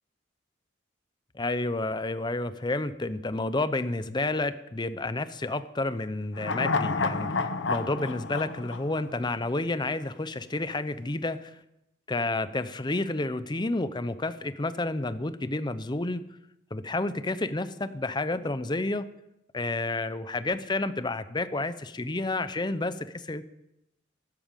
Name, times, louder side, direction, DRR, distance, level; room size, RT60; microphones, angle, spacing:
voice 1, 1.3-11.6 12.1-16.2 16.7-19.1 19.5-23.4, left 2 dB, 25° left, 13 dB, 0.7 m, -30 dB
sound 1, 6.4-9.8 10.1-10.2, left 4 dB, 70° left, 0.8 m, -30 dB
12.5 x 8.7 x 9.0 m, 0.87 s
head